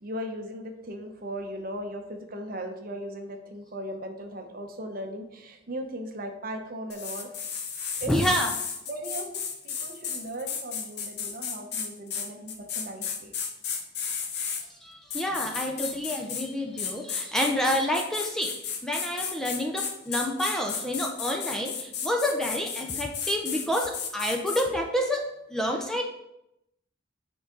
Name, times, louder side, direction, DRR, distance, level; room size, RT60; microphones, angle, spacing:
voice 1, 0.0-8.2 8.9-13.3 15.3-15.7 17.2-17.3, equal, 45° right, 5 dB, 0.8 m, -38 dB
sound 1, 6.9-14.6 15.1-16.5 16.8-24.7, left 6 dB, 55° left, 0.8 m, -33 dB
voice 2, 8.1-8.5 14.8-18.5 18.8-25.2 25.5-26.0, equal, ahead, 1 dB, 0.6 m, -28 dB
7.8 x 4.6 x 3.8 m, 0.83 s
head